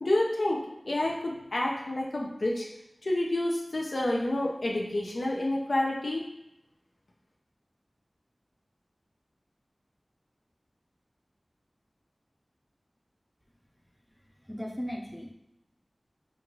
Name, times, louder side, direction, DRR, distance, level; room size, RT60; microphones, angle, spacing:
voice 1, 0.0-2.7 3.0-6.2, left 1 dB, 75° left, -2 dB, 0.6 m, -29 dB
voice 2, 14.5-15.3, equal, 5° left, 1 dB, 0.6 m, -36 dB
5.1 x 2.4 x 3.0 m, 0.85 s
wide cardioid pair, 55°, 0 cm